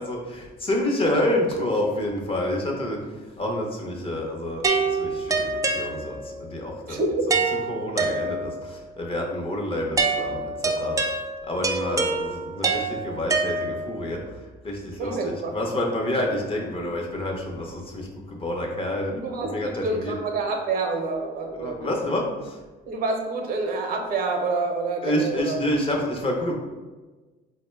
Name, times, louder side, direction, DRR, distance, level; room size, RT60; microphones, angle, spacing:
voice 1, 0.0-3.0 3.4-7.0 7.7-11.0 11.4-14.2 14.6-20.1 21.5-22.6 25.0-26.5, left 1 dB, 35° left, 0 dB, 0.7 m, -28 dB
sound 1, 4.6-6.4 7.3-8.7 10.0-14.1, right 3 dB, 20° right, 0.3 m, -26 dB
voice 2, 6.9-7.2 15.0-15.6 19.1-22.0 22.9-25.6, right 3 dB, 60° right, 3 dB, 0.6 m, -27 dB
3.9 x 2.1 x 3.1 m, 1.3 s
cardioid pair, 110°, 17 cm